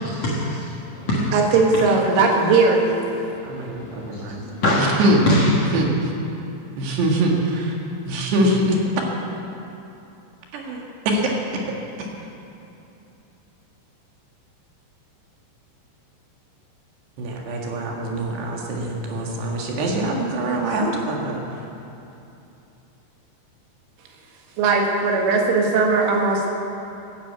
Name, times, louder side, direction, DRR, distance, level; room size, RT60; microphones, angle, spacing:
voice 1, 0.1-1.3 1.7-1.8 3.2-5.7, equal, 70° left, -4 dB, 1.6 m, -24 dB
voice 2, 1.3-3.0 24.6-26.5, right 4 dB, 85° right, 1 dB, 4.3 m, -18 dB
voice 3, 3.4-4.5 4.8-5.2 5.7-6.1 6.8-7.8 8.1-9.1 10.5-11.3 12.0-12.1 17.2-21.6, right 1 dB, 65° right, -1 dB, 3.8 m, -23 dB
15.5 x 10.0 x 8.3 m, 2.9 s
omnidirectional pair, 5.5 m